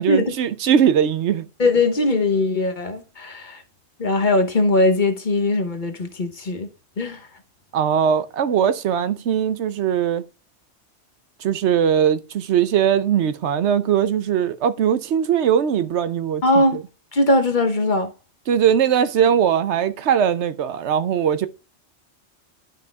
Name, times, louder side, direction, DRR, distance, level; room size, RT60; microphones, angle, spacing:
voice 1, 0.0-1.4 7.7-10.2 11.4-16.4 16.7-16.8 18.5-21.5, right 8 dB, 70° right, 0.9 m, -20 dB
voice 2, 1.6-3.6 4.0-6.7 7.0-7.3 16.4-16.8 17.1-18.1, left 2 dB, 45° left, 1.1 m, -20 dB
11.5 x 5.5 x 2.3 m
omnidirectional pair, 1.2 m